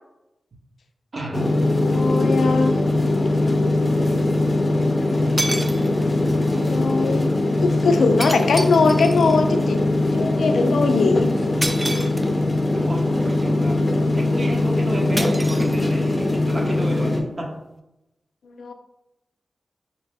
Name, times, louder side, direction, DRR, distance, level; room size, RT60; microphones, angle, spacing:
voice 1, 1.1-1.6 5.0-5.4 6.0-6.7 12.7-13.8 14.1-17.5, right 1 dB, 55° right, 0 dB, 0.8 m, -32 dB
sound 1, 1.3-17.2, left 2 dB, 35° left, 0.6 m, -21 dB
voice 2, 1.8-2.7 6.5-7.3 7.6-9.8 10.1-11.3 18.4-18.7, left 4 dB, 90° left, 6 dB, 0.3 m, -21 dB
sound 2, 2.7-2.8 4.8-4.9 5.4-6.2 8.2-9.4 11.6-12.6 15.2-16.3, right 1 dB, 20° right, 0.3 m, -30 dB
4.0 x 2.1 x 3.4 m, 0.92 s
cardioid pair, 55°, 0 cm